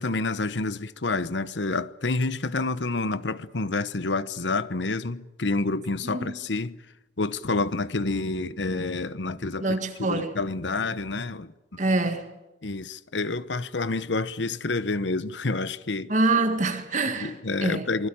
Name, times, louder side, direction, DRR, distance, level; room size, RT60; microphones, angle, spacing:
voice 1, 0.0-6.8 7.2-11.8 12.6-16.1 17.2-18.1, left 3 dB, 80° left, 1.0 m, -28 dB
voice 2, 9.6-10.4 11.8-12.3 16.1-17.3 17.6-17.9, right 2 dB, 45° right, 1.9 m, -25 dB
26.5 x 20.0 x 8.8 m
head